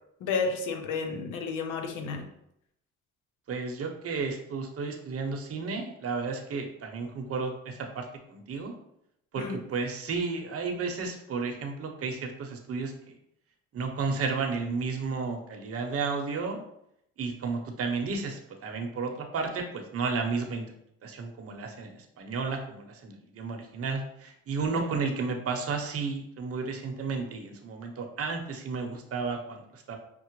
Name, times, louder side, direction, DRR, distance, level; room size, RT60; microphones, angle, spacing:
voice 1, 0.2-2.3 9.4-9.6 24.7-25.0, left 4 dB, 85° left, 5 dB, 0.7 m, -32 dB
voice 2, 3.5-8.7 9.3-9.4 9.7-13.1 13.7-16.6 17.2-20.6 21.0-29.9, right 4 dB, 50° right, 3 dB, 0.8 m, -32 dB
5.8 x 2.0 x 3.0 m, 0.78 s
cardioid pair, 90°, 30 cm